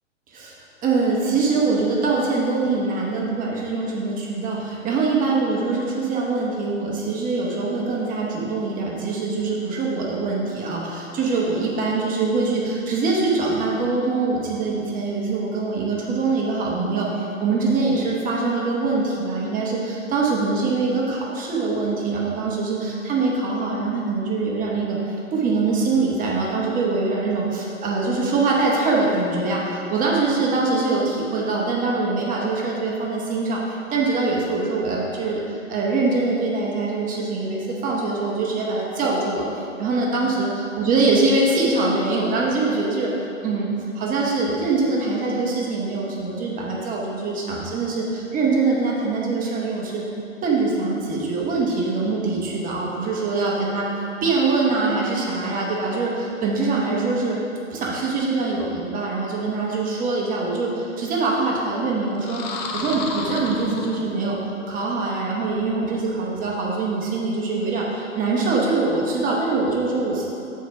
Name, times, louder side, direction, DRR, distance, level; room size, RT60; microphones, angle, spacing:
voice 1, 0.8-25.0 25.3-33.6 33.9-43.1 43.4-43.7 43.9-50.0 50.4-53.8 54.2-57.4 57.7-62.4 62.7-64.4 64.7-70.3, right 3 dB, 20° right, -3 dB, 1.0 m, -23 dB
Monster screech, 62.1-64.5, left 3 dB, 30° left, 0.7 m, -31 dB
6.9 x 4.6 x 5.7 m, 2.7 s
figure-of-eight pair, 110°, 38 cm